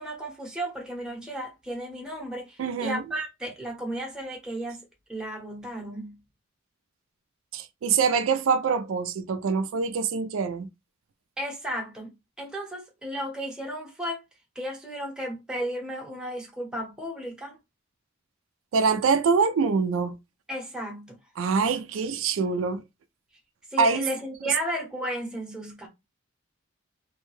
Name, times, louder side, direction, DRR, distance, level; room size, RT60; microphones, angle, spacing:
voice 1, 0.0-6.2 11.4-14.2 14.5-17.6 20.5-21.2 23.7-25.9, equal, 5° right, 0.8 m, -34 dB
voice 2, 2.6-3.0 7.5-10.7 18.7-20.2 21.4-22.8 23.8-24.0, right 5 dB, 75° right, 0.4 m, -24 dB
2.6 x 2.2 x 3.0 m
head